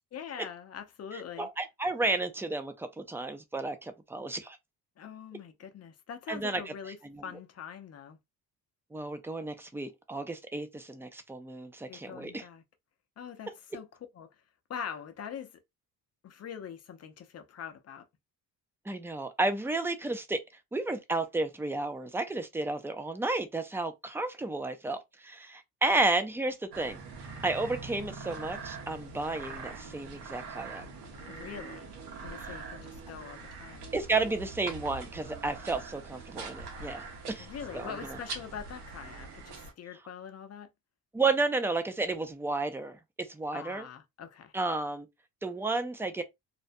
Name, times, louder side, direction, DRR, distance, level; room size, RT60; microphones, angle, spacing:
voice 1, 0.1-1.5 5.0-7.0 7.2-8.2 11.9-12.6 13.2-13.9 14.1-14.3 14.7-15.6 16.2-18.1 31.3-31.9 32.2-33.9 37.4-40.7 43.5-44.5, left 7 dB, 40° left, 0.6 m, -43 dB
voice 2, 1.4-4.6 6.3-6.6 7.0-7.2 8.9-12.4 18.9-20.4 20.7-27.0 27.4-30.8 33.9-37.5 37.7-38.2 41.1-43.0 43.3-43.9 44.5-45.1 45.4-46.2, right 3 dB, 5° right, 0.3 m, -32 dB
sound 1, 26.7-39.7, right 4 dB, 85° right, 0.9 m, -43 dB
2.5 x 2.1 x 2.5 m
cardioid pair, 115°, 39 cm